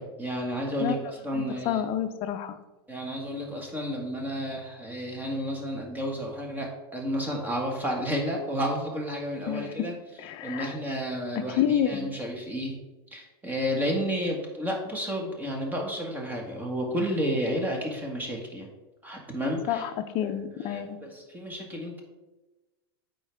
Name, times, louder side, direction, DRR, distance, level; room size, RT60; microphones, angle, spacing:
voice 1, 0.0-1.8 2.9-9.9 10.4-12.8 13.1-18.7 19.0-19.9 20.2-20.3 20.6-22.0, equal, 15° right, 0 dB, 1.6 m, -31 dB
voice 2, 1.3-2.6 9.5-9.9 10.2-10.8 11.3-12.1 19.7-21.0, left 10 dB, 45° left, 9 dB, 0.7 m, -29 dB
8.3 x 4.7 x 3.5 m, 1.1 s
hypercardioid pair, 120°, 13 cm